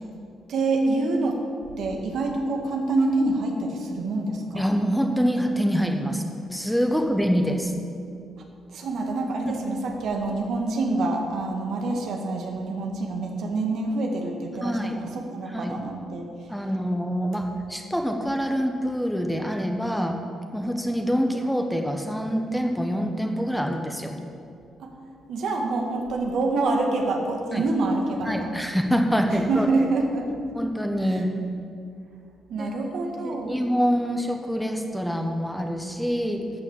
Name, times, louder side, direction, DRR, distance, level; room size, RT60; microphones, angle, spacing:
voice 1, 0.5-1.4 1.8-4.6 8.7-16.3 24.8-24.9 25.3-28.5 29.3-30.6 31.0-31.2 32.5-33.5, right 2 dB, 70° right, 2 dB, 1.8 m, -26 dB
voice 2, 4.5-7.7 9.5-9.6 14.6-15.0 15.5-15.7 16.5-20.2 20.5-24.1 27.5-27.7 28.3-29.7 30.5-31.3 32.6-32.7 33.2-36.4, equal, ahead, 4 dB, 1.1 m, -25 dB
13.0 x 6.3 x 7.2 m, 2.4 s
cardioid pair, 90°, 0 cm